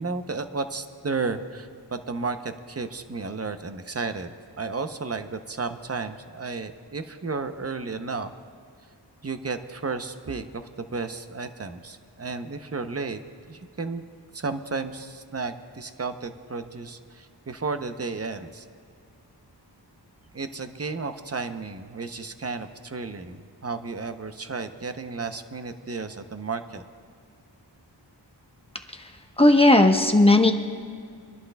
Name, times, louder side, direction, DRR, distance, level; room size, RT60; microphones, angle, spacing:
voice 1, 0.0-4.3 4.6-8.3 9.2-13.2 13.5-14.0 14.3-18.6 20.3-26.8, right 4 dB, 35° right, 8 dB, 0.7 m, -33 dB
voice 2, 29.4-30.5, left 2 dB, 15° left, 4 dB, 1.0 m, -16 dB
27.5 x 11.5 x 2.3 m, 2.3 s
wide cardioid pair, 45°, 43 cm